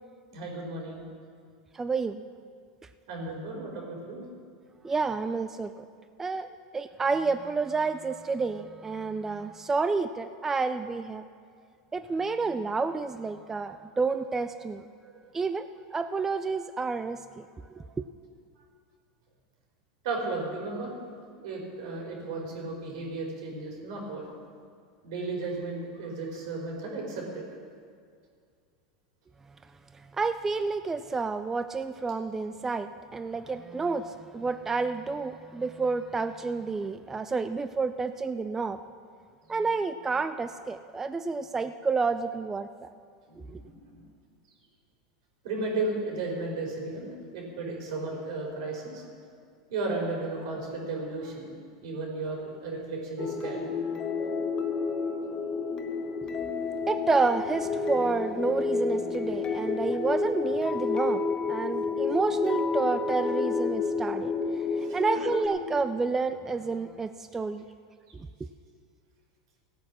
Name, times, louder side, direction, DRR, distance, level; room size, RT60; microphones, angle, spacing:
voice 1, 0.3-1.0 3.1-4.3 15.0-15.2 20.0-20.9 21.3-24.3 25.0-27.4 43.3-44.0 45.4-49.1 49.7-51.5 51.8-53.6 64.8-65.0, right 3 dB, 75° right, 0 dB, 4.2 m, -34 dB
voice 2, 1.7-2.2 4.8-5.8 6.2-11.2 11.9-14.8 15.3-17.4 17.7-18.0 30.2-38.8 39.5-42.9 43.4-43.6 56.9-61.2 61.5-64.3 64.8-67.6, right 4 dB, 15° right, 10 dB, 0.3 m, -30 dB
sound 1, 53.2-65.5, left 4 dB, 25° left, 1.0 m, -30 dB
16.5 x 8.6 x 6.1 m, 2.1 s
supercardioid pair, 135°, 3 cm